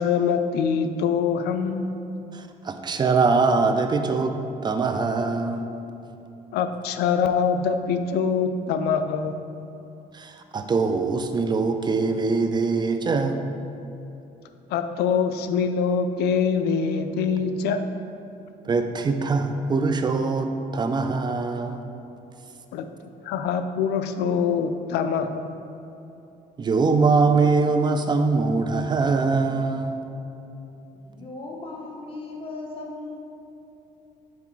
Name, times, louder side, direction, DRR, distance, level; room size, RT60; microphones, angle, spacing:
voice 1, 0.0-1.9 6.5-9.4 14.7-17.8 22.7-22.9 23.2-25.5, left 6 dB, 75° left, 9 dB, 0.4 m, -24 dB
voice 2, 2.3-4.3 4.6-5.7 10.1-13.4 18.6-21.8 26.6-30.0, right 4 dB, 25° right, 7 dB, 0.4 m, -23 dB
voice 3, 30.9-33.2, left 2 dB, 30° left, -2 dB, 1.2 m, -37 dB
6.0 x 4.0 x 4.6 m, 2.9 s
cardioid pair, 110°, 17 cm